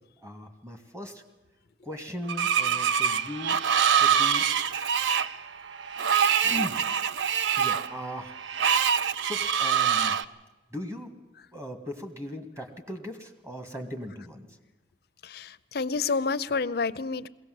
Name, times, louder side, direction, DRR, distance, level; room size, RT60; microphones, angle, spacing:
voice 1, 0.2-1.2 1.8-3.6 4.0-4.5 6.4-6.8 7.6-8.4 9.2-10.2 10.7-11.1 11.5-14.6, left 1 dB, 15° right, 6 dB, 1.8 m, -38 dB
Screech, 2.3-10.2, right 8 dB, 90° right, 0.6 m, -25 dB
voice 2, 15.2-17.3, left 4 dB, 60° left, 13 dB, 0.6 m, -30 dB
21.5 x 17.0 x 7.8 m, 1.1 s
head